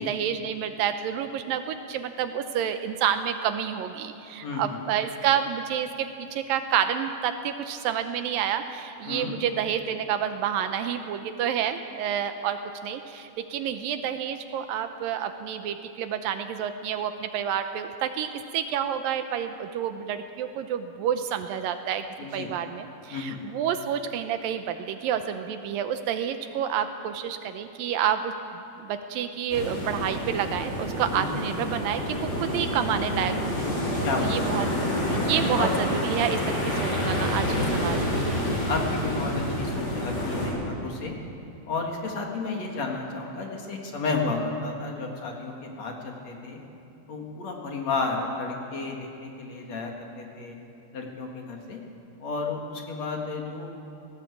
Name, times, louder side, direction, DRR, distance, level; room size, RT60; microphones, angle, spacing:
voice 1, 0.0-22.0 22.3-34.7 35.1-38.2, right 9 dB, 80° right, 8 dB, 2.4 m, -29 dB
voice 2, 4.4-4.8 9.1-9.3 22.2-22.5 23.1-23.4 31.1-31.4 34.0-34.4 35.6-35.7 37.7-38.0 38.7-41.1 41.7-46.6 47.1-50.6 50.9-51.8 52.2-53.7, left 3 dB, 50° left, 1 dB, 2.9 m, -32 dB
sound 1, 29.5-40.5, equal, 70° left, 7.6 m, -28 dB
18.0 x 17.5 x 8.3 m, 2.7 s
omnidirectional pair, 4.3 m